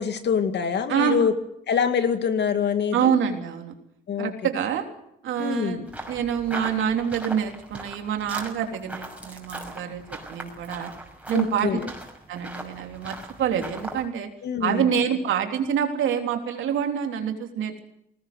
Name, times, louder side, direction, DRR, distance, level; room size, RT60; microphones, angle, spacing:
voice 1, 0.0-1.3 1.7-3.1 4.1-4.3 5.4-5.8 11.3-11.9 14.4-14.9, left 7 dB, 60° left, 8 dB, 2.3 m, -25 dB
voice 2, 0.9-1.2 2.9-3.7 4.2-4.9 5.2-10.9 11.3-11.8 12.3-14.3 14.6-17.8, right 8 dB, 80° right, 4 dB, 3.4 m, -26 dB
sound 1, 5.9-14.1, right 1 dB, 5° right, 5.8 m, -39 dB
20.0 x 18.5 x 8.0 m, 0.77 s
cardioid pair, 90°, 20 cm